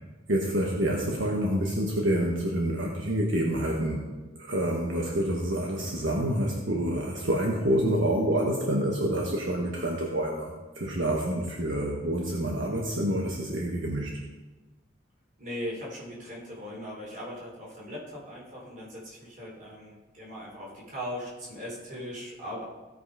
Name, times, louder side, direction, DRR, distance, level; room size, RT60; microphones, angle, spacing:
voice 1, 0.3-4.0 4.4-14.2, right 1 dB, 75° right, -1 dB, 1.4 m, -27 dB
voice 2, 15.4-22.6, equal, 40° right, -4 dB, 3.9 m, -39 dB
16.5 x 5.6 x 5.0 m, 1.2 s
head